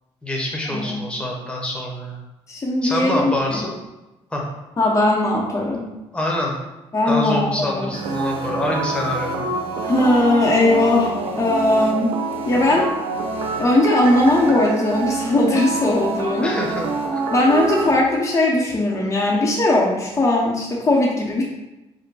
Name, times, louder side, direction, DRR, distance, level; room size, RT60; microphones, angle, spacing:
voice 1, 0.2-2.2 2.8-3.7 4.3-4.4 6.1-6.5 7.1-9.4 16.4-17.2, left 1 dB, 10° left, -1 dB, 1.0 m, -25 dB
voice 2, 2.5-3.6 4.8-5.8 6.9-7.9 9.8-12.1 12.5-12.9 13.6-16.5 17.3-21.4, left 2 dB, 30° left, -3 dB, 0.7 m, -19 dB
sound 1, 7.9-17.9, right 3 dB, 70° right, 0.7 m, -26 dB
5.0 x 2.2 x 4.6 m, 1.0 s
cardioid pair, 110°, 11 cm